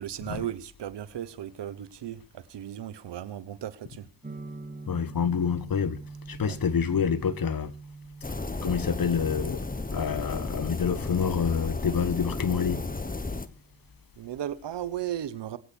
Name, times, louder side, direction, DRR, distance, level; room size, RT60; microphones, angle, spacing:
voice 1, 0.0-4.1 6.4-6.6 14.2-15.6, right 11 dB, 70° right, 1.1 m, -36 dB
sound 1, 4.2-14.0, right 3 dB, 20° right, 2.3 m, -46 dB
voice 2, 4.9-6.0 6.3-7.7 8.6-9.6 9.9-12.8, left 7 dB, 50° left, 1.4 m, -27 dB
sound 2, 8.2-13.5, left 3 dB, 20° left, 1.4 m, -33 dB
23.0 x 8.5 x 4.5 m
supercardioid pair, 50°, 44 cm